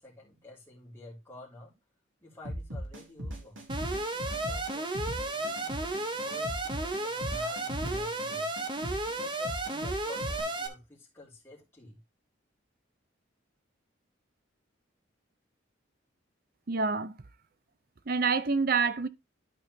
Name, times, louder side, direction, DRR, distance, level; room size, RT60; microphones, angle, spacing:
voice 1, 0.0-1.7 2.2-3.6 4.1-4.9 5.2-8.5 9.1-12.0, left 2 dB, 10° left, 3.1 m, -50 dB
sound 1, 2.5-10.4, equal, 80° right, 2.6 m, -39 dB
Alarm, 3.7-10.7, right 2 dB, 25° right, 1.1 m, -33 dB
voice 2, 16.7-17.2 18.1-19.1, right 4 dB, 45° right, 0.6 m, -27 dB
12.0 x 4.3 x 3.3 m
head